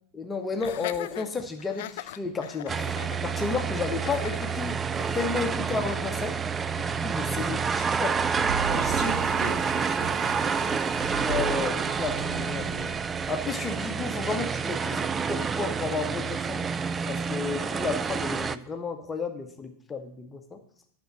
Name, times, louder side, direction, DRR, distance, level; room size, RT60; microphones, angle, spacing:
voice 1, 0.1-2.9 3.2-4.8 5.1-6.4 6.8-8.3 8.7-9.1 11.2-13.0 13.3-16.6 17.1-20.6, left 4 dB, 15° left, 4 dB, 1.1 m, -32 dB
Laughter, 0.6-5.6, left 14 dB, 55° left, 0.4 m, -40 dB
sound 1, 2.7-18.6, right 6 dB, 20° right, 0.4 m, -28 dB
sound 2, 8.1-13.2, right 6 dB, 70° right, 0.8 m, -37 dB
voice 2, 8.6-10.7, right 4 dB, 40° right, 6 dB, 1.5 m, -38 dB
10.5 x 6.2 x 6.8 m, 0.63 s
figure-of-eight pair, 90°, 0 cm